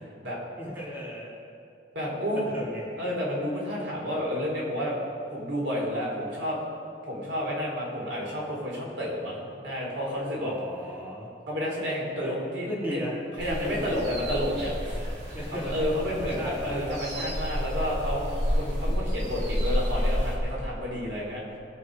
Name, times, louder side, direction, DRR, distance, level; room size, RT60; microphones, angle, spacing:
voice 1, 0.6-1.3 2.3-2.8 10.4-11.3 12.2-12.4 12.7-13.2 13.4-13.9 15.3-15.7 16.1-16.8, equal, 10° right, -6 dB, 2.8 m, -36 dB
voice 2, 1.9-2.5 3.0-5.0 5.3-6.6 7.0-10.5 11.5-13.0 13.4-15.1 15.5-21.4, equal, 85° right, -4 dB, 4.1 m, -30 dB
sound 1, 13.4-20.4, equal, 70° right, 3.0 m, -30 dB
21.0 x 8.2 x 5.0 m, 2.6 s
head